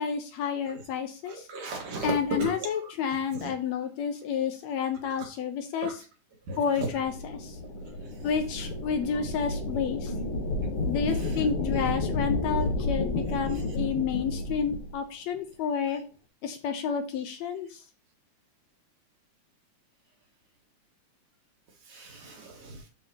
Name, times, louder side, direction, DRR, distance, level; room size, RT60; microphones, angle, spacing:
voice 1, 0.0-1.5 2.0-6.0 6.6-7.6 8.2-10.1 10.9-16.0 16.4-17.7, left 7 dB, 75° left, 7 dB, 1.8 m, -30 dB
voice 2, 1.3-2.1 2.4-2.5 3.4-3.5 5.8-5.9 6.5-6.6 21.9-22.8, right 4 dB, 65° right, 1 dB, 2.6 m, -36 dB
sound 1, 6.9-14.9, left 2 dB, 55° left, 2.0 m, -31 dB
12.0 x 4.1 x 2.8 m, 0.34 s
omnidirectional pair, 3.5 m